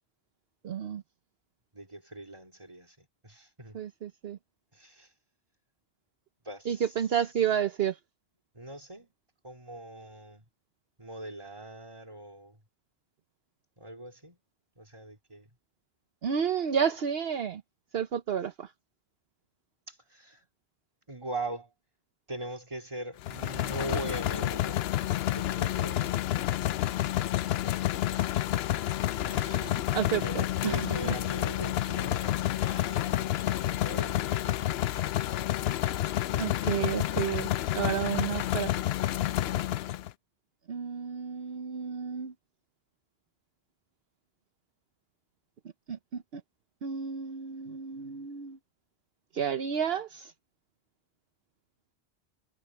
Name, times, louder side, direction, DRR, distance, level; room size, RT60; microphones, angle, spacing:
voice 1, 0.6-1.0 3.7-4.4 6.7-8.0 16.2-17.6 17.9-18.7 29.4-31.2 36.4-37.5 37.7-38.7 40.7-42.3 45.9-46.4 46.8-48.6 49.3-50.3, right 8 dB, 65° right, 1.1 m, -31 dB
voice 2, 1.7-3.8 4.7-5.1 6.4-6.8 8.5-9.1 9.4-10.5 11.0-12.6 13.8-14.4 14.8-15.5 19.9-20.4 21.1-21.7 22.3-24.8 25.3-26.3 28.1-28.8 29.2-29.8 30.1-34.7 36.0-36.5, right 1 dB, 25° right, 3.3 m, -41 dB
sound 1, 23.2-40.1, left 13 dB, 70° left, 0.8 m, -29 dB
omnidirectional pair, 1.1 m